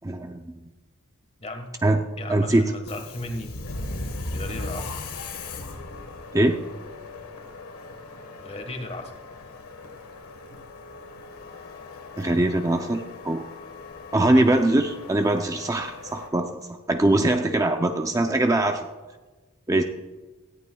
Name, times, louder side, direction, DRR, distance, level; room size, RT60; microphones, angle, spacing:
voice 1, 0.0-0.4 1.8-2.0 2.3-2.7 6.3-6.6 12.2-13.4 14.1-16.6 16.9-18.9 19.7-19.8, right 1 dB, 15° right, 5 dB, 0.5 m, -22 dB
voice 2, 2.2-3.5 4.3-5.0 8.4-9.2 14.2-14.6, left 1 dB, 30° left, 6 dB, 1.5 m, -35 dB
Subway metro underground, 2.8-16.3, left 2 dB, 85° left, 1.4 m, -38 dB
18.0 x 13.5 x 2.3 m, 1.2 s
head